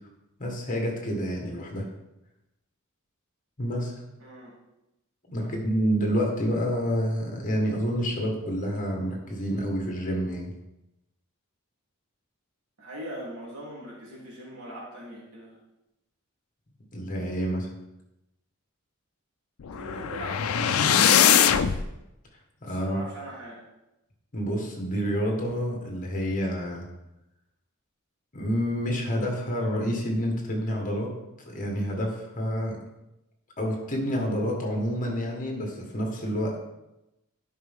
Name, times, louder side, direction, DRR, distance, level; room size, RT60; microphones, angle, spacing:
voice 1, 0.4-1.9 3.6-3.9 5.2-10.5 16.9-17.7 22.6-23.0 24.3-26.9 28.3-31.1 31.5-32.8 33.6-36.7, equal, 40° left, 0 dB, 1.8 m, -28 dB
voice 2, 4.2-4.5 5.4-5.5 12.8-15.6 19.7-21.8 22.7-23.6, right 1 dB, 75° right, -5 dB, 3.2 m, -41 dB
sound 1, 19.6-21.8, left 9 dB, 75° left, 0.5 m, -21 dB
11.0 x 5.6 x 3.7 m, 0.92 s
head